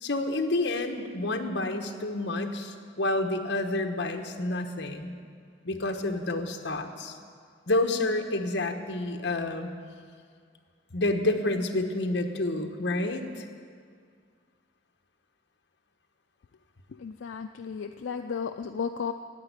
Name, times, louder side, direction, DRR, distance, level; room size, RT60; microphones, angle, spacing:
voice 1, 0.0-5.1 5.6-7.2 7.7-9.7 10.9-13.5, left 2 dB, 65° left, 4 dB, 1.1 m, -29 dB
voice 2, 17.0-19.1, left 6 dB, 90° left, 7 dB, 0.4 m, -34 dB
10.5 x 8.2 x 9.8 m, 2.1 s
head